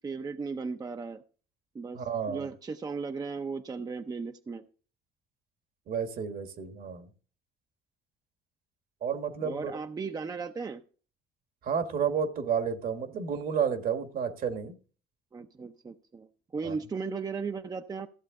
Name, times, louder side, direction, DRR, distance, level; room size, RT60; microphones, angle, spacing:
voice 1, 0.0-1.2 1.7-4.6 9.4-10.8 15.3-16.3 16.5-18.1, right 4 dB, 20° right, 0.6 m, -36 dB
voice 2, 1.9-2.5 5.9-7.1 9.0-9.7 11.6-14.8 16.6-16.8, right 7 dB, 60° right, 1.5 m, -31 dB
14.5 x 7.5 x 3.7 m
cardioid pair, 110°, 17 cm